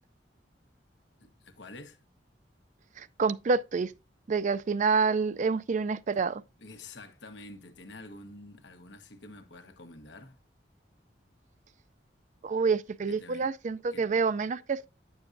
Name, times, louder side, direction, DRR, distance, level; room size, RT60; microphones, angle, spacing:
voice 1, 1.2-2.0 6.6-10.4 13.1-13.5 13.9-14.1, left 2 dB, 90° left, 1.4 m, -48 dB
voice 2, 3.0-3.9 4.3-6.4 12.4-14.9, right 5 dB, 45° right, 0.4 m, -28 dB
9.4 x 7.1 x 2.6 m
head